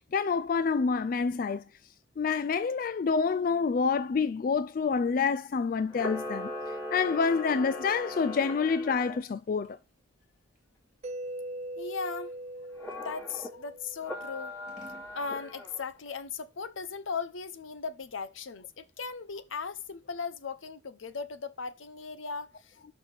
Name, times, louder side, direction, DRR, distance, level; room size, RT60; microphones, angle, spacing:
voice 1, 0.1-1.6 2.2-6.5 6.9-9.8, left 5 dB, 45° left, 0.3 m, -27 dB
Camera, 5.9-9.2 12.8-13.5 14.0-15.8, left 1 dB, 15° left, 2.5 m, -39 dB
Scissors, 8.7-13.4 14.0-15.1, right 2 dB, 5° right, 2.4 m, -60 dB
Mallet percussion, 11.0-14.8, right 1 dB, 35° right, 0.5 m, -41 dB
voice 2, 11.8-12.3 12.8-14.6 15.1-22.8, left 5 dB, 80° left, 0.8 m, -38 dB
5.8 x 4.7 x 6.5 m
head